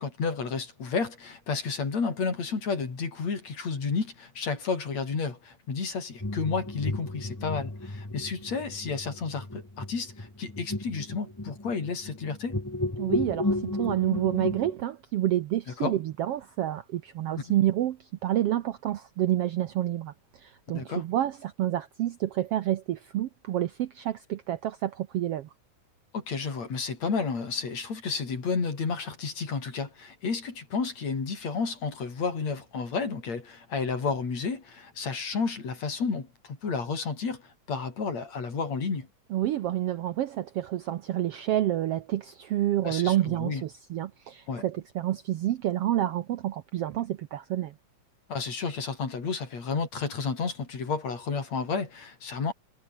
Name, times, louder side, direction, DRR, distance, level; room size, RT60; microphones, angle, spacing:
voice 1, 0.0-12.6 15.8-16.0 17.4-17.5 20.7-21.1 26.1-39.1 42.8-43.6 44.5-44.7 48.3-52.5, left 5 dB, 60° left, 5.6 m, -31 dB
sound 1, 6.2-14.7, left 1 dB, 20° left, 0.5 m, -33 dB
voice 2, 13.0-25.5 39.3-47.7, right 13 dB, 70° right, 1.5 m, -29 dB
omnidirectional pair, 3.5 m